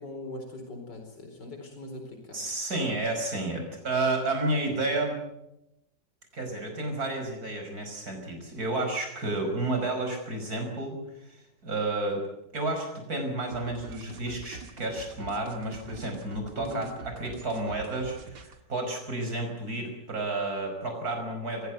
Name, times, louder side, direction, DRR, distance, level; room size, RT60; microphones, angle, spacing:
voice 1, 0.0-2.4 16.5-16.9, left 2 dB, 80° left, 3 dB, 5.0 m, -41 dB
voice 2, 2.3-5.2 6.3-11.0 11.3-12.2 12.5-21.7, right 2 dB, 60° right, 4 dB, 5.9 m, -31 dB
sound 1, 13.5-18.6, right 4 dB, 75° right, 2.4 m, -45 dB
26.0 x 16.5 x 9.3 m, 0.88 s
omnidirectional pair, 1.8 m